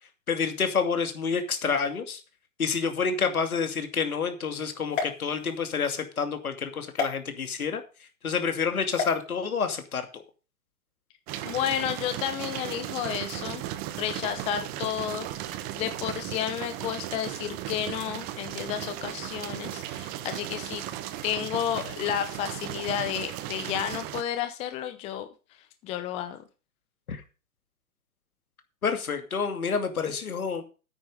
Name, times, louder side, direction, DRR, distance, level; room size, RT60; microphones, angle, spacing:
voice 1, 0.3-2.2 2.6-7.8 8.2-10.2 27.1-27.2 28.8-30.6, left 5 dB, 70° left, 7 dB, 2.6 m, -28 dB
sound 1, 4.9-5.9 7.0-7.1 8.9-9.2, left 5 dB, 55° left, 4.7 m, -32 dB
sound 2, 11.3-24.2, right 13 dB, 20° right, 0.8 m, -36 dB
voice 2, 11.4-13.6 14.0-20.8 21.2-25.3 25.8-26.4, left 10 dB, 15° left, 10 dB, 0.7 m, -31 dB
9.4 x 9.2 x 5.1 m, 0.33 s
figure-of-eight pair, 125°, 44 cm